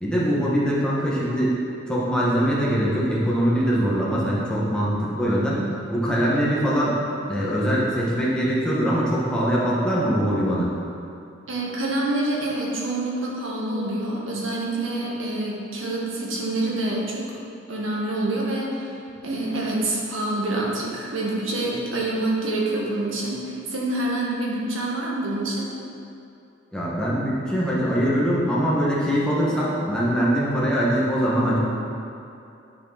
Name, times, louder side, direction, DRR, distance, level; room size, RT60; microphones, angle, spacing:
voice 1, 0.0-1.5 1.9-5.6 5.9-7.0 7.3-10.7 26.7-31.6, equal, 5° left, -7 dB, 1.8 m, -22 dB
voice 2, 11.5-17.3 17.7-18.9 19.2-25.7, right 2 dB, 80° right, -4 dB, 1.9 m, -26 dB
9.6 x 6.9 x 4.3 m, 2.6 s
head